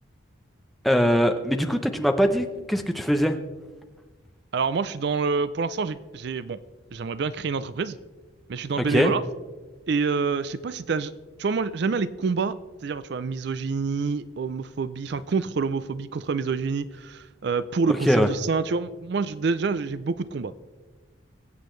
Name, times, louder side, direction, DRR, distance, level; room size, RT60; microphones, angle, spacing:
voice 1, 0.8-3.4 8.9-9.1 17.9-18.3, equal, ahead, 5 dB, 0.7 m, -22 dB
voice 2, 4.5-6.6 6.9-8.0 8.5-9.2 9.9-11.1 11.4-12.6 12.8-20.5, right 4 dB, 55° right, 15 dB, 0.4 m, -27 dB
23.0 x 8.1 x 3.2 m, 1.3 s
head